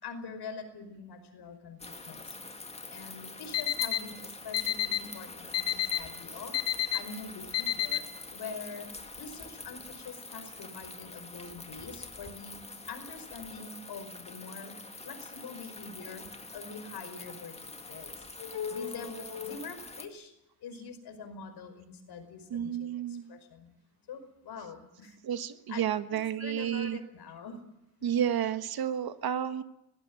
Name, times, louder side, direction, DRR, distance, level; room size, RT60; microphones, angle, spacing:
voice 1, 0.0-2.4 2.9-6.6 6.9-8.0 8.3-12.5 12.9-14.8 15.0-16.3 16.5-20.3 20.6-23.7 24.1-25.2 25.7-25.8 26.4-27.6 28.0-28.2, left 5 dB, 65° left, 8 dB, 5.2 m, -44 dB
sound 1, 1.8-20.1, left 3 dB, 15° left, 1.9 m, -45 dB
Alarm, 3.5-4.0 4.5-5.0 5.5-6.0 6.5-7.0 7.5-8.0, left 12 dB, 85° left, 2.1 m, -28 dB
voice 2, 22.5-23.3 25.2-27.0 28.0-29.6, right 9 dB, 60° right, 11 dB, 1.5 m, -31 dB
20.0 x 16.0 x 9.8 m, 0.85 s
cardioid pair, 105°, 42 cm